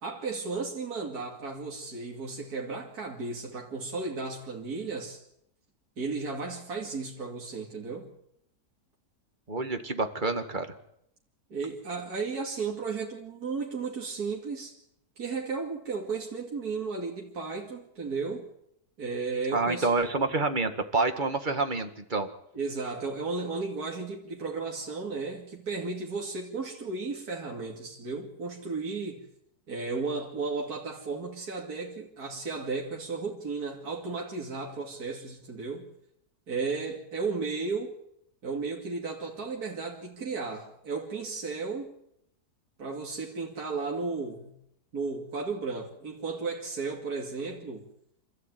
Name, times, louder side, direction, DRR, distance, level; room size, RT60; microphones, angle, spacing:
voice 1, 0.0-5.2 6.0-8.1 11.5-14.8 15.2-18.5 19.0-19.9 22.5-29.2 29.7-35.9 36.5-38.0 38.4-41.9 42.8-44.5 44.9-47.9, right 4 dB, 70° right, 3.1 m, -34 dB
voice 2, 9.5-10.7 19.5-22.3, right 3 dB, 30° right, 2.0 m, -28 dB
27.0 x 14.5 x 9.2 m
omnidirectional pair, 1.7 m